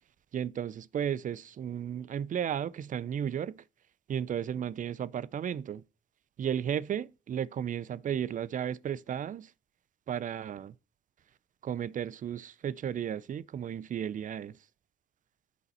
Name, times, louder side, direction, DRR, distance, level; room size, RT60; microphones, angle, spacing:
voice 1, 0.3-3.6 4.1-5.8 6.4-9.5 10.1-10.7 11.6-14.6, right 9 dB, 40° right, 0.4 m, -34 dB
8.3 x 5.2 x 4.2 m
cardioid pair, 90°, 20 cm